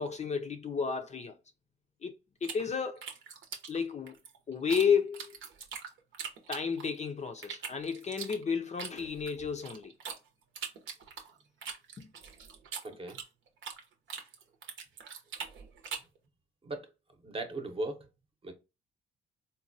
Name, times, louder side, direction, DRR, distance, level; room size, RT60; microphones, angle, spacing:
voice 1, 0.0-1.3 2.0-2.1 2.4-3.0 3.7-4.2 4.5-5.4 6.5-9.9 12.0-12.1, left 6 dB, 35° left, 0.5 m, -32 dB
sound 1, 2.4-4.9 5.1-7.0 7.4-10.2 10.6-13.8 14.1-16.2, right 6 dB, 75° right, 0.8 m, -42 dB
voice 2, 12.8-13.2 16.6-16.9 17.2-18.1 18.4-18.5, right 2 dB, 25° right, 0.8 m, -37 dB
4.0 x 2.2 x 2.6 m
cardioid pair, 90°, 20 cm